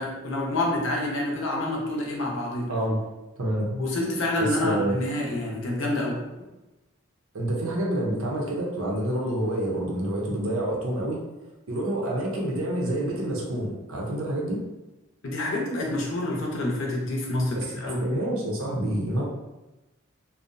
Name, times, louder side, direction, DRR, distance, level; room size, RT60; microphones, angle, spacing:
voice 1, 0.0-2.7 3.7-6.2 15.2-18.0, left 1 dB, 65° left, -2 dB, 0.6 m, -28 dB
voice 2, 2.7-3.0 3.4-3.7 4.4-4.9 7.3-11.2 11.7-14.6 17.6-19.2, right 1 dB, 80° right, -2 dB, 0.6 m, -28 dB
2.5 x 2.0 x 2.5 m, 1.0 s
head